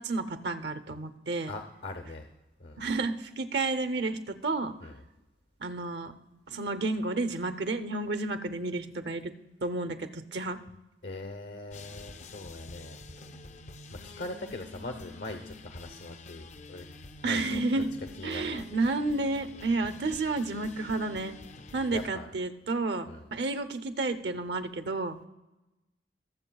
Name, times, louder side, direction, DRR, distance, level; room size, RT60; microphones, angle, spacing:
voice 1, 0.0-1.5 2.8-4.7 5.6-6.1 6.5-9.3 9.6-10.6 17.2-17.9 18.2-21.3 21.7-25.2, right 3 dB, 70° right, 10 dB, 0.7 m, -31 dB
voice 2, 1.5-2.3 2.6-2.9 4.8-5.0 11.0-13.2 13.9-16.9 17.2-17.6 18.2-18.6 21.9-22.3 23.0-23.3, left 2 dB, 75° left, 6 dB, 0.8 m, -41 dB
sound 1, 11.7-22.1, left 3 dB, 40° left, 0.4 m, -48 dB
20.5 x 7.3 x 2.3 m, 1.0 s
head